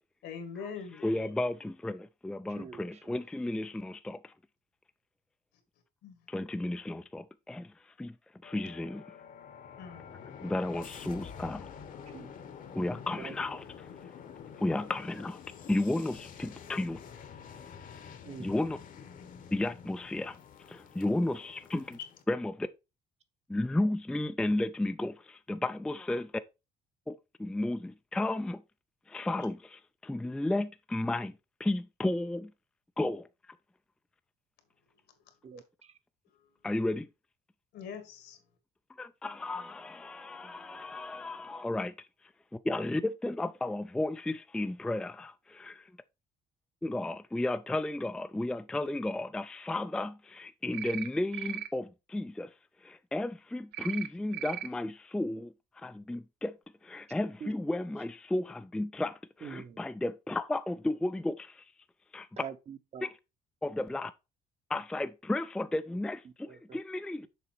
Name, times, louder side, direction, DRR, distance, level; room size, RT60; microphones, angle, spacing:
voice 1, 0.2-1.3 6.0-6.2 9.8-10.0 36.4-36.5 37.7-38.4, left 6 dB, 80° left, 1.8 m, -43 dB
voice 2, 1.0-4.3 6.3-8.1 8.4-9.0 10.4-11.7 12.7-13.9 14.6-15.4 15.7-17.0 18.4-18.8 19.5-20.4 20.7-22.0 22.3-22.7 23.5-26.3 27.1-28.6 29.1-32.5 33.0-33.3 36.6-37.1 39.0-41.9 42.6-45.9 46.8-52.5 52.8-56.6 56.8-61.7 62.1-62.3 63.0-63.2 63.6-64.1 64.7-67.3, left 2 dB, 5° left, 0.3 m, -33 dB
voice 3, 2.5-3.1 12.1-12.3 13.2-13.3 18.2-18.5 35.4-35.9 57.4-57.5 59.4-59.8 62.4-63.0 66.5-66.8, right 7 dB, 40° right, 0.9 m, -44 dB
sound 1, 8.4-22.2, left 7 dB, 50° left, 1.0 m, -48 dB
sound 2, 50.7-51.1 51.3-51.7 53.7-54.1 54.3-54.7, right 11 dB, 80° right, 0.7 m, -37 dB
6.8 x 4.1 x 4.4 m
cardioid pair, 110°, 17 cm